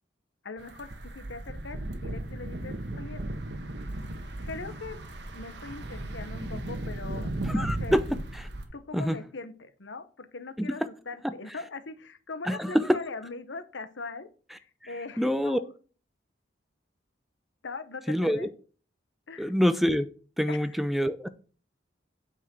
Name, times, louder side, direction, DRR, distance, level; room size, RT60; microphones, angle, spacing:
voice 1, 0.4-3.2 4.4-5.0 5.3-8.0 8.7-15.7 17.6-18.5 19.3-19.5 20.5-20.8, left 3 dB, 80° left, 0.9 m, -41 dB
sound 1, 0.6-8.6, right 1 dB, 65° right, 1.4 m, -36 dB
voice 2, 7.5-8.0 8.3-8.5 8.9-9.2 10.6-10.7 11.2-11.3 12.5-12.9 15.2-15.6 18.1-18.5 19.4-20.1 20.4-21.3, equal, ahead, 0.4 m, -26 dB
9.0 x 4.7 x 6.2 m
head